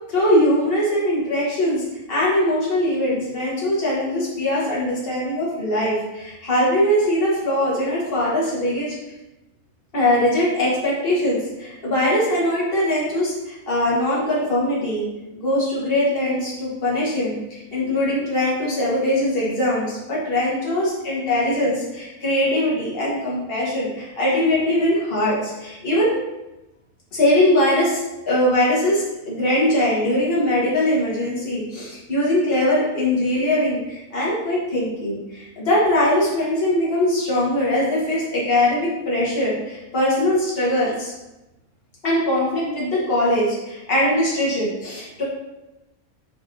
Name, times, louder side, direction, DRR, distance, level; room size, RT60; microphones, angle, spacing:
voice 1, 0.1-8.9 9.9-15.1 15.4-26.2 27.1-28.0 28.3-41.1 42.0-45.2, left 1 dB, 45° left, -7 dB, 1.9 m, -21 dB
9.8 x 3.6 x 2.8 m, 0.98 s
omnidirectional pair, 1.4 m